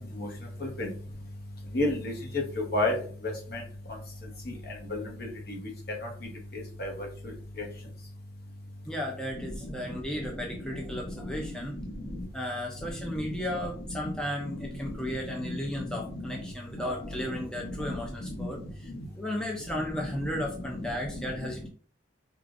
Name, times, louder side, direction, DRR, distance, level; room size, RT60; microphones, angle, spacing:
voice 1, 1.7-3.6 4.5-5.6 6.0-6.1 6.5-7.7 9.4-9.8 10.5-10.8 11.2-12.3 13.0-13.6 14.5-16.4 16.7-16.8 17.1-17.9 18.2-18.5 18.9-19.1 19.9-20.4 20.7-21.7, left 1 dB, 55° left, 1 dB, 1.0 m, -34 dB
voice 2, 8.9-11.8 12.3-18.6 19.1-21.7, left 1 dB, 5° left, -1 dB, 0.5 m, -34 dB
4.7 x 2.4 x 2.5 m, 0.43 s
head